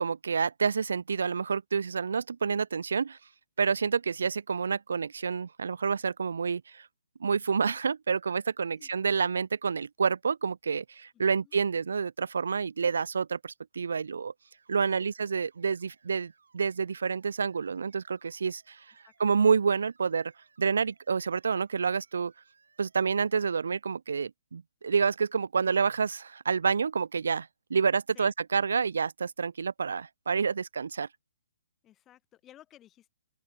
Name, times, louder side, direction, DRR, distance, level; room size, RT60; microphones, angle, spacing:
voice 1, 0.0-3.2 3.6-6.9 7.2-14.3 14.7-18.8 19.2-20.3 20.6-22.3 22.8-31.1, right 5 dB, 65° right, 0.4 m, -28 dB
voice 2, 11.1-11.6 15.0-15.1 19.0-19.4 28.1-28.3 31.8-33.1, left 12 dB, 10° left, 2.2 m, -56 dB
sound 1, 14.5-23.5, right 5 dB, 90° right, 3.1 m, -67 dB
sound 2, 22.5-23.3 24.8-26.0, right 10 dB, 10° right, 7.4 m, -83 dB
open air
hypercardioid pair, 180°, 0 cm